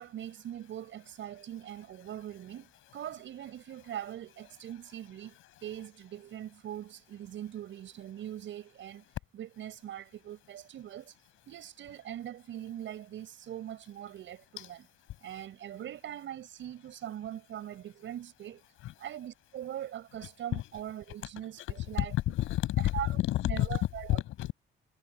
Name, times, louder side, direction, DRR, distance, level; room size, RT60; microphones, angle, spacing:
voice 1, 0.0-9.0 9.3-11.2 11.5-14.8 15.2-18.6 19.0-22.1 22.9-23.1 23.4-24.2, right 11 dB, 75° right, 7.2 m, -41 dB
voice 2, 21.6-23.8 24.1-24.5, left 15 dB, 90° left, 7.9 m, -30 dB
cardioid pair, 90°, 20 cm